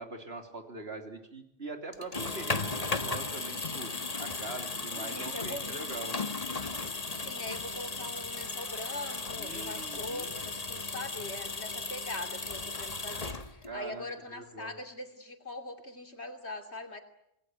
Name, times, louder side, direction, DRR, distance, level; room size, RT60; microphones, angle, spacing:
voice 1, 0.0-6.1 9.4-10.3 13.7-14.7, right 3 dB, 70° right, 5 dB, 3.8 m, -42 dB
sound 1, 1.9-13.8, left 3 dB, 35° left, 1.6 m, -36 dB
voice 2, 4.9-5.9 7.2-17.0, left 2 dB, 80° left, 6 dB, 3.3 m, -42 dB
27.5 x 20.5 x 9.4 m, 0.78 s
omnidirectional pair, 1.1 m